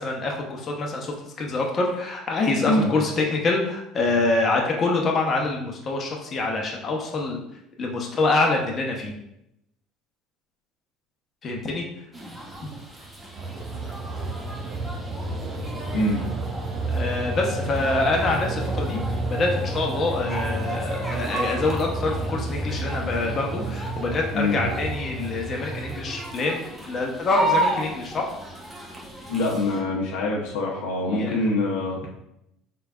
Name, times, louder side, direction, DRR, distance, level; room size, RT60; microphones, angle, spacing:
voice 1, 0.0-7.4 7.8-9.1 11.4-11.8 16.9-19.0 19.3-28.3 31.1-31.4, left 3 dB, 40° left, 0 dB, 0.8 m, -25 dB
sound 1, 12.1-29.8, right 1 dB, 15° right, 1.0 m, -34 dB
sound 2, 13.3-26.4, right 2 dB, 45° right, 0.5 m, -31 dB
voice 2, 15.9-16.2 24.3-24.6 29.3-32.1, left 2 dB, 80° left, -2 dB, 0.8 m, -24 dB
3.8 x 3.4 x 2.3 m, 0.82 s
supercardioid pair, 85°, 0 cm